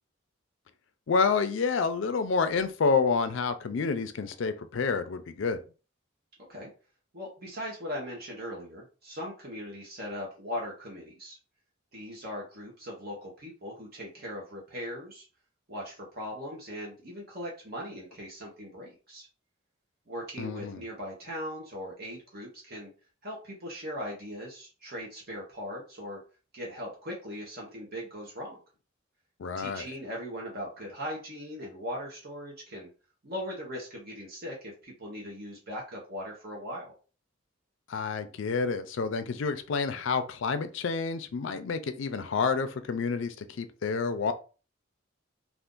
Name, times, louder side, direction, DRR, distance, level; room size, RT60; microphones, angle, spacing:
voice 1, 1.1-5.6 20.4-20.8 29.4-29.8 37.9-44.3, left 5 dB, 65° left, 0.4 m, -29 dB
voice 2, 7.1-11.4 11.9-15.2 15.7-19.3 20.1-22.9 23.2-26.2 26.5-28.6 29.6-32.9 33.2-37.0, equal, 50° right, 0.8 m, -39 dB
2.5 x 2.5 x 3.6 m
head